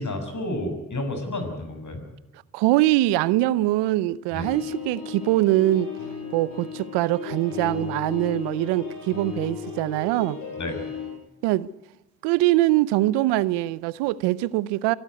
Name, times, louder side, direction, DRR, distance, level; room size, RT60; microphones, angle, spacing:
voice 1, 0.0-2.0 4.3-4.5 10.6-10.8, left 1 dB, 45° left, 6.9 m, -30 dB
voice 2, 2.5-5.9 6.3-10.4 11.4-11.7 12.2-14.9, right 16 dB, 85° right, 0.7 m, -23 dB
sound 1, 4.4-11.1, left 6 dB, 85° left, 5.5 m, -35 dB
24.0 x 13.5 x 9.7 m
hypercardioid pair, 45°, 40 cm